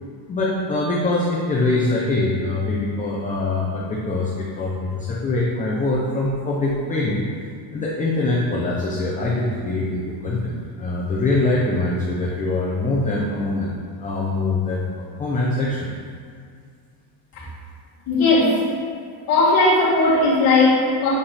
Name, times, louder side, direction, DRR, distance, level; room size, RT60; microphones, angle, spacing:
voice 1, 0.3-7.3 7.7-13.7 14.0-14.9 15.2-15.9, left 2 dB, 15° left, -4 dB, 0.5 m, -23 dB
voice 2, 18.1-18.8 19.3-21.1, left 2 dB, 50° left, -11 dB, 1.8 m, -17 dB
8.4 x 5.6 x 3.3 m, 2.1 s
cardioid pair, 180°, 48 cm